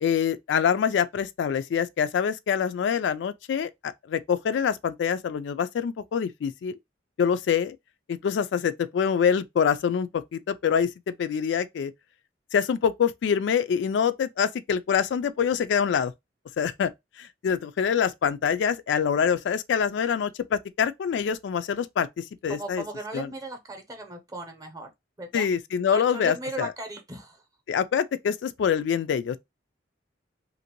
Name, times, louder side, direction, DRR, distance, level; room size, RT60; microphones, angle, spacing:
voice 1, 0.0-6.7 7.2-7.8 8.1-11.9 12.5-16.1 16.6-16.9 17.2-22.8 23.1-23.3 25.3-26.7 27.7-29.4, left 7 dB, 70° left, 0.3 m, -25 dB
voice 2, 22.5-24.9 25.2-25.5 25.9-27.4, right 1 dB, 20° right, 0.7 m, -37 dB
2.9 x 2.6 x 2.9 m
head